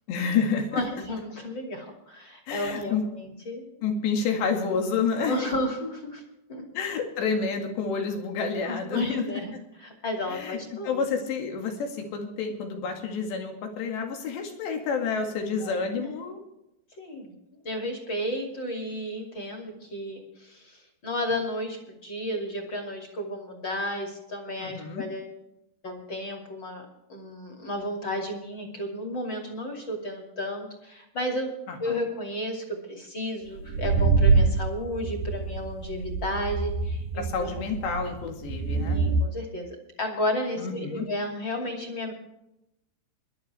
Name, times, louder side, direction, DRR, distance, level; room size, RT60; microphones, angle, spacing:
voice 1, 0.1-0.8 2.5-3.1 3.8-5.5 6.7-9.3 10.3-10.6 10.8-16.4 24.6-25.1 31.7-32.0 37.2-39.0 40.6-41.1, left 5 dB, 90° left, 3 dB, 4.3 m, -29 dB
voice 2, 0.7-3.8 5.2-6.2 6.5-6.6 8.7-9.5 9.8-11.1 15.6-16.1 17.0-17.3 17.6-25.3 25.8-31.5 31.8-37.6 38.8-42.1, left 1 dB, 30° left, 2 dB, 2.7 m, -33 dB
sound 1, 33.6-39.2, right 4 dB, 75° right, 2.0 m, -25 dB
21.0 x 12.0 x 3.4 m, 0.88 s
omnidirectional pair, 4.8 m